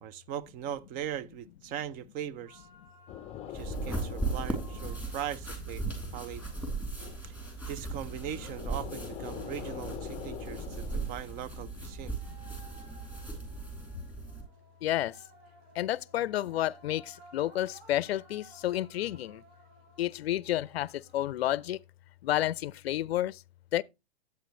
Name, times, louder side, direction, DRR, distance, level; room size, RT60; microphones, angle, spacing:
voice 1, 0.0-2.7 3.5-5.9 6.1-6.4 7.2-7.4 7.7-12.2, right 10 dB, 25° right, 0.6 m, -39 dB
sound 1, 2.4-21.8, right 2 dB, 70° right, 5.0 m, -59 dB
sound 2, 3.1-11.3, left 11 dB, 20° left, 0.6 m, -45 dB
sound 3, 3.5-14.4, right 3 dB, 5° right, 3.1 m, -37 dB
voice 2, 14.8-15.2 15.8-19.4 20.0-21.8 22.2-23.4 23.7-23.8, left 13 dB, 70° left, 0.5 m, -30 dB
11.5 x 8.2 x 3.1 m
hypercardioid pair, 115°, 32 cm